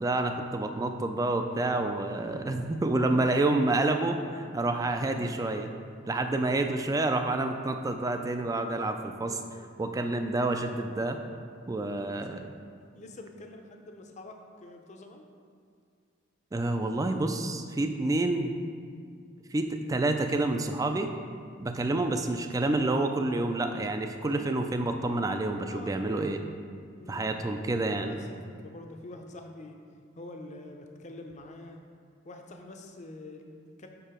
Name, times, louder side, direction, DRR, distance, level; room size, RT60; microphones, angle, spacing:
voice 1, 0.0-5.7 6.1-9.4 9.8-11.2 11.7-12.5 16.5-18.5 19.5-21.1 21.6-26.4 27.1-28.2, right 2 dB, 20° right, 6 dB, 0.3 m, -28 dB
voice 2, 12.8-15.3 25.4-25.9 27.0-27.3 27.5-29.8 30.2-31.8 32.2-33.9, left 2 dB, 35° left, 4 dB, 0.6 m, -47 dB
5.8 x 4.6 x 5.0 m, 2.2 s
head